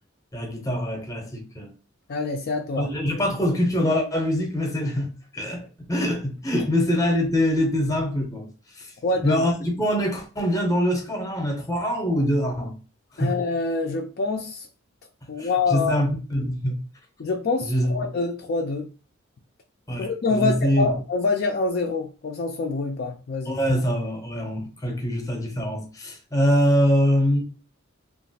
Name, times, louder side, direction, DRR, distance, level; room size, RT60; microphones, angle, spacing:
voice 1, 0.3-1.7 2.8-8.5 8.8-8.9 9.2-12.7 13.1-13.4 15.4-16.8 17.6-18.0 19.9-20.9 23.5-27.4, equal, 15° left, 0.7 m, -24 dB
voice 2, 2.1-2.9 9.0-9.5 13.2-14.7 15.3-16.0 17.2-18.9 20.0-23.6, left 3 dB, 50° left, 0.4 m, -26 dB
2.9 x 2.4 x 2.7 m
head